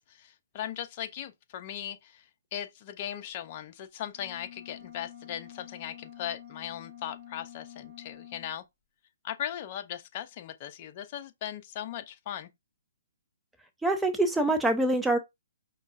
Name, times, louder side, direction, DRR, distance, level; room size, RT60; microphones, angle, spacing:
voice 1, 0.1-2.2 2.5-8.6 9.2-12.5, left 10 dB, 40° left, 0.6 m, -38 dB
sound 1, 4.1-8.6, left 10 dB, 20° left, 2.7 m, -48 dB
voice 2, 13.8-15.2, right 2 dB, 5° right, 0.4 m, -25 dB
5.2 x 2.3 x 2.6 m
hypercardioid pair, 145°, 0 cm